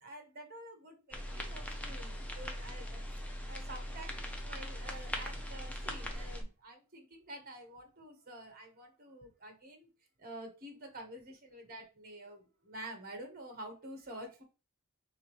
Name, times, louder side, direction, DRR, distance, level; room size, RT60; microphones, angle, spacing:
voice 1, 0.0-3.0 3.5-9.9 10.2-14.4, right 1 dB, 45° right, 4 dB, 1.2 m, -49 dB
sound 1, 1.1-6.4, equal, 5° left, 0.7 m, -40 dB
4.9 x 3.5 x 3.1 m, 0.32 s
head